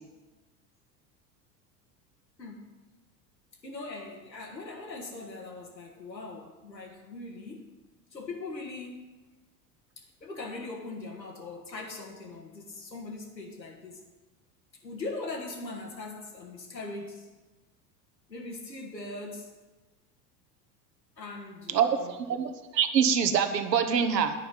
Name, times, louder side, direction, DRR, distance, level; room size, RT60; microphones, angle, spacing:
voice 1, 3.6-7.7 8.1-9.1 10.0-14.0 14.8-17.3 18.3-19.5 21.2-22.2, left 3 dB, 85° left, 0 dB, 1.7 m, -40 dB
voice 2, 21.7-24.3, right 7 dB, 75° right, 8 dB, 1.0 m, -25 dB
9.2 x 5.4 x 7.6 m, 1.2 s
figure-of-eight pair, 75°, 50 cm